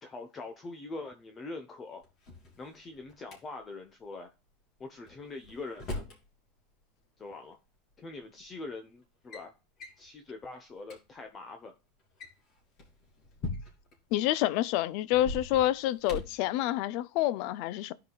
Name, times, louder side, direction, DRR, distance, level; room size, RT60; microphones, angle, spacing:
voice 1, 0.0-2.0 2.6-4.3 4.8-6.0 7.2-7.6 8.0-9.5 10.0-11.7, left 3 dB, 20° left, 0.8 m, -43 dB
Drawer open or close, 2.0-3.4 5.1-6.2 7.5-7.6 8.4-8.7 9.0-9.5 9.8-10.0 10.5-10.6 10.8-11.0 12.0-14.0 15.1-16.5, left 2 dB, 40° left, 3.0 m, -41 dB
voice 2, 14.1-17.9, left 14 dB, 55° left, 0.5 m, -28 dB
14.0 x 4.8 x 2.3 m
supercardioid pair, 150°, 0 cm